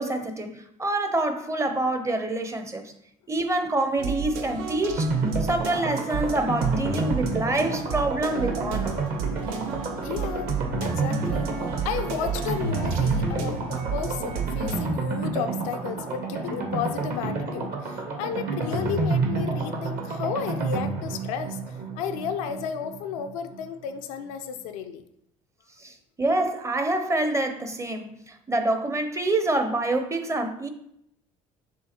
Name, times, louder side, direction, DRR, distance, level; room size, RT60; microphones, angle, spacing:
voice 1, 0.0-2.8 3.3-5.1 5.4-9.0 25.8-30.7, right 2 dB, 15° right, 0.6 m, -26 dB
sound 1, 4.0-14.9, right 7 dB, 75° right, 0.5 m, -33 dB
sound 2, 5.0-23.6 23.9-24.0 24.2-24.3, right 3 dB, 55° right, 1.0 m, -29 dB
voice 2, 10.0-10.6 10.8-11.5 11.8-25.0, left 7 dB, 75° left, 0.4 m, -33 dB
6.2 x 2.2 x 2.9 m
hypercardioid pair, 55°, 18 cm